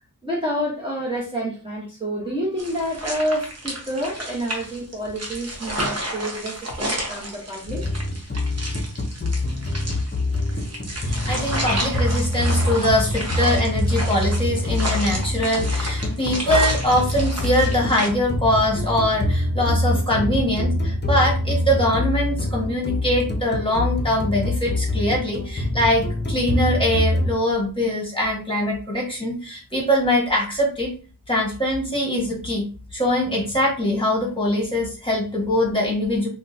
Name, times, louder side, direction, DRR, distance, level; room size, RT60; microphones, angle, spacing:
voice 1, 0.2-7.9 20.2-20.4, equal, 15° right, 1.0 m, -28 dB
sound 1, 2.6-18.1, right 1 dB, 45° right, 1.0 m, -31 dB
sound 2, 7.7-27.3, left 1 dB, 30° left, 0.8 m, -25 dB
voice 2, 11.0-30.9 31.3-32.6 32.9-36.3, left 1 dB, 15° left, 1.5 m, -22 dB
3.7 x 2.3 x 2.7 m
wide cardioid pair, 65°, 35 cm